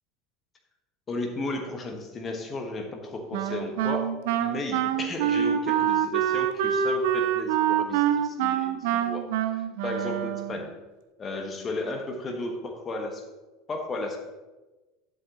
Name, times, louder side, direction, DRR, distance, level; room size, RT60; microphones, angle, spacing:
voice 1, 1.1-9.2 9.5-10.7 11.2-13.2 13.7-14.2, left 2 dB, 30° left, 3 dB, 1.5 m, -34 dB
Wind instrument woodwind instrument, 3.3-10.7, right 9 dB, 60° right, 0.5 m, -26 dB
11.5 x 7.7 x 3.0 m, 1.1 s
figure-of-eight pair, 75°, 0 cm